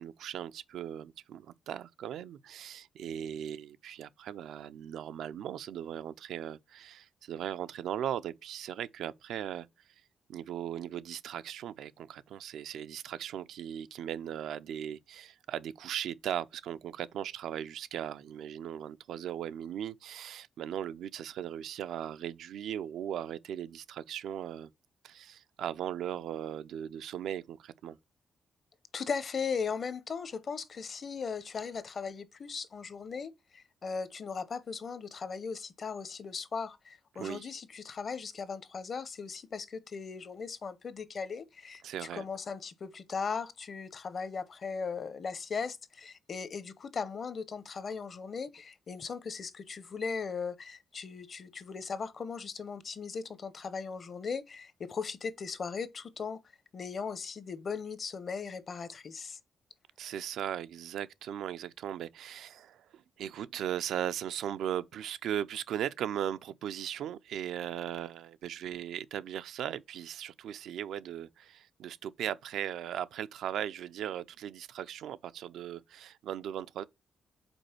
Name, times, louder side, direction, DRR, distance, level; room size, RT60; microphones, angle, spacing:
voice 1, 0.0-9.7 10.3-24.7 25.0-28.0 37.2-37.5 41.8-42.3 60.0-76.8, right 10 dB, 90° right, 0.4 m, -38 dB
voice 2, 28.9-56.4 56.7-59.4, left 5 dB, 45° left, 0.7 m, -38 dB
5.3 x 4.1 x 4.4 m
cardioid pair, 115°, 0 cm